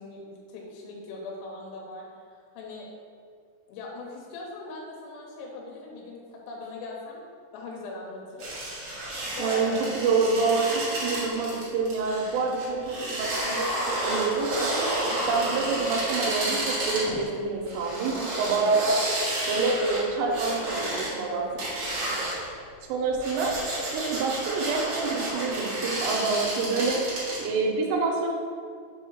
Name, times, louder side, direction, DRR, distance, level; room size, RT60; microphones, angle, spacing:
voice 1, 0.0-2.1 2.3-2.9 3.7-7.2 7.5-8.5 9.4-10.5 15.1-15.6 18.5-18.8, left 2 dB, 90° left, -2 dB, 3.7 m, -40 dB
sound 1, 8.4-17.2 17.7-21.1 21.6-22.5 23.1-27.4, right 1 dB, 60° right, 2.1 m, -31 dB
voice 2, 9.4-13.7 14.0-19.0 19.5-21.5 22.9-23.6 23.9-28.3, right 4 dB, 85° right, -1 dB, 3.2 m, -27 dB
7.5 x 2.8 x 5.5 m, 2.1 s
omnidirectional pair, 5.7 m